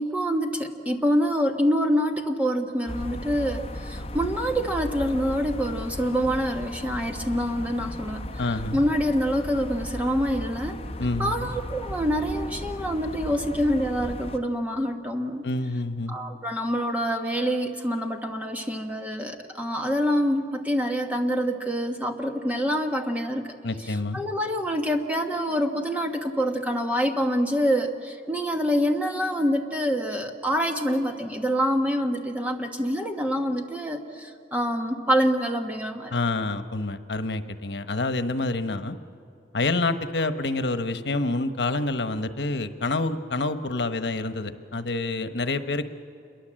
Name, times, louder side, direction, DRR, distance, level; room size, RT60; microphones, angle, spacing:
voice 1, 0.0-8.2 8.7-10.8 11.2-15.5 16.1-23.5 23.8-36.1, equal, 10° right, 4 dB, 1.3 m, -26 dB
sound 1, 2.9-14.4, left 1 dB, 35° left, 1.2 m, -36 dB
voice 2, 8.4-8.8 11.0-11.5 15.4-16.1 23.6-24.2 36.1-39.0 39.5-45.8, left 2 dB, 85° left, 10 dB, 1.1 m, -27 dB
27.5 x 22.5 x 7.6 m, 2.5 s
head